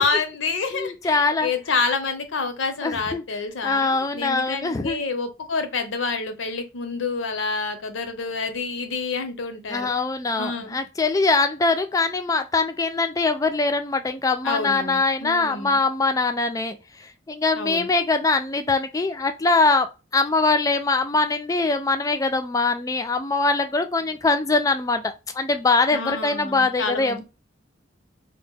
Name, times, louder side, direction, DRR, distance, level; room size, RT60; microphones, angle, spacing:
voice 1, 0.0-9.9 10.4-10.8 14.4-15.8 17.6-17.9 25.9-27.2, left 4 dB, 75° left, 0.6 m, -28 dB
voice 2, 0.7-1.5 2.8-3.2 3.6-5.0 9.7-19.9 20.1-27.2, left 3 dB, 20° left, 0.3 m, -22 dB
2.8 x 2.1 x 3.6 m
head